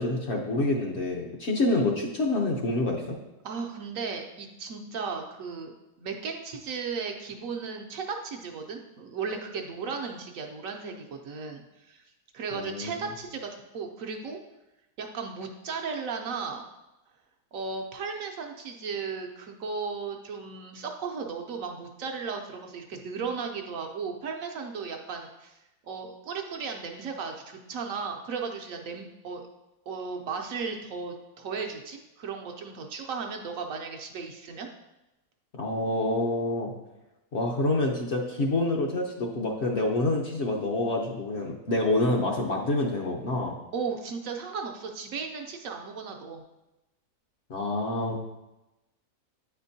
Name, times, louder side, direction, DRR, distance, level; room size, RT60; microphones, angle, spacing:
voice 1, 0.0-3.2 12.5-13.1 35.5-36.7 37.3-43.6 47.5-48.2, left 2 dB, 55° left, 0 dB, 0.9 m, -27 dB
voice 2, 3.4-5.7 6.0-12.0 12.3-14.4 15.0-16.6 17.5-25.6 25.8-29.5 29.9-34.7 43.7-46.4, right 5 dB, 70° right, 3 dB, 1.0 m, -35 dB
9.0 x 4.3 x 2.7 m, 0.97 s
omnidirectional pair, 1.6 m